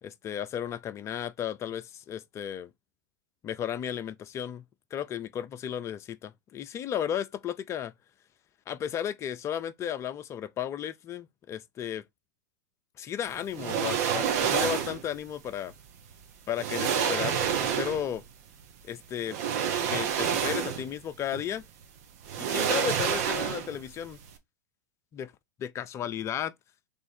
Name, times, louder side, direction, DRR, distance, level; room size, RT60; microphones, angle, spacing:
voice 1, 0.0-2.7 3.4-4.6 4.9-7.9 8.7-12.0 13.0-15.7 16.5-18.2 18.8-19.4 19.9-21.6 22.4-24.2 25.1-25.3 25.6-26.5, left 9 dB, 30° left, 0.5 m, -34 dB
sound 1, 13.5-15.1 16.1-16.2 16.6-18.2 19.3-21.0 21.3-21.4 22.2-23.9 24.1-24.3, right 8 dB, 55° right, 1.0 m, -28 dB
3.5 x 3.1 x 4.3 m
hypercardioid pair, 100°, 10 cm